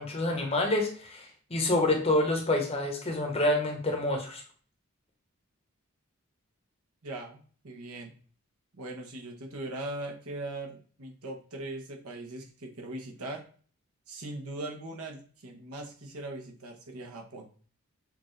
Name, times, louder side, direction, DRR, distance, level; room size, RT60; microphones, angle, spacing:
voice 1, 0.0-4.4, left 1 dB, 25° left, 2 dB, 0.9 m, -27 dB
voice 2, 7.0-8.1 8.7-13.4 14.1-17.5, right 2 dB, 80° right, 2 dB, 1.1 m, -40 dB
6.4 x 2.6 x 3.2 m, 0.43 s
head